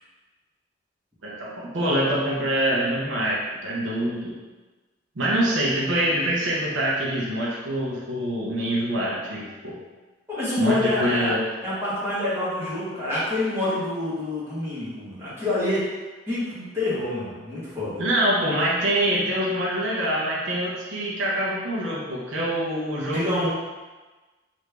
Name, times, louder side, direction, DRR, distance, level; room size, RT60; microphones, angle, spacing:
voice 1, 1.2-4.3 5.2-9.8 10.6-11.4 18.0-23.5, right 1 dB, 85° right, -5 dB, 0.8 m, -25 dB
voice 2, 10.3-11.3 11.6-15.9 16.3-18.0 23.1-23.5, left 2 dB, 15° right, -11 dB, 1.2 m, -27 dB
3.1 x 2.6 x 3.3 m, 1.2 s
head